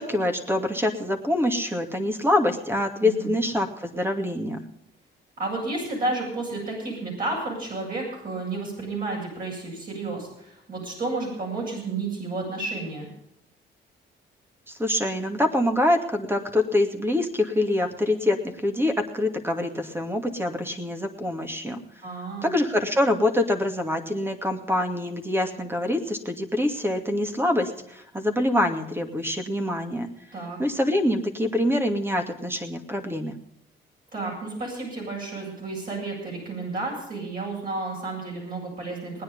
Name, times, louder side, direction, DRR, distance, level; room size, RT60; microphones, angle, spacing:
voice 1, 0.0-4.6 14.7-21.8 22.4-30.1 30.6-33.4, left 1 dB, 10° right, 6 dB, 2.4 m, -25 dB
voice 2, 3.0-3.3 5.4-13.1 22.0-22.5 30.3-30.6 34.1-39.2, right 3 dB, 45° right, -3 dB, 8.0 m, -31 dB
19.5 x 9.9 x 5.5 m, 0.80 s
cardioid pair, 90°, 20 cm